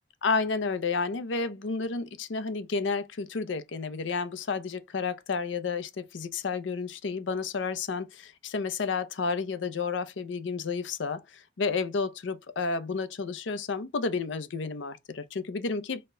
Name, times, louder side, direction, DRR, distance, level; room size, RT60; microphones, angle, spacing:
voice 1, 0.2-16.0, left 4 dB, 70° left, 0.5 m, -31 dB
4.2 x 2.1 x 3.6 m
head